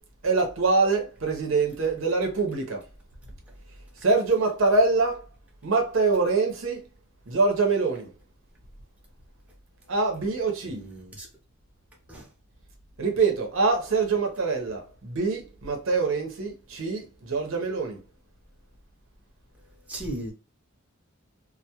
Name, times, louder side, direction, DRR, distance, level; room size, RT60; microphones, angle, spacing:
voice 1, 0.2-2.8 4.0-5.2 5.6-6.8 7.3-8.1 9.9-10.8 13.0-18.0, right 3 dB, 90° right, 0.7 m, -24 dB
voice 2, 10.6-11.3 12.1-12.3 19.9-20.3, right 1 dB, 5° right, 0.6 m, -36 dB
2.2 x 2.1 x 2.8 m
head